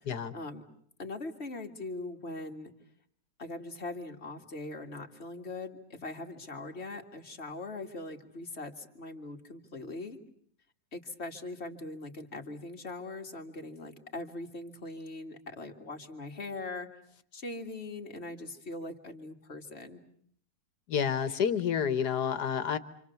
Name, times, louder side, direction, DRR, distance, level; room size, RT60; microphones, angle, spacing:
voice 1, 1.0-2.7 3.4-10.2 10.9-16.9 17.3-20.0, left 2 dB, 40° left, 3 dB, 2.4 m, -41 dB
voice 2, 20.9-22.8, left 7 dB, 90° left, 13 dB, 1.9 m, -29 dB
28.5 x 26.5 x 7.1 m, 0.65 s
omnidirectional pair, 1.7 m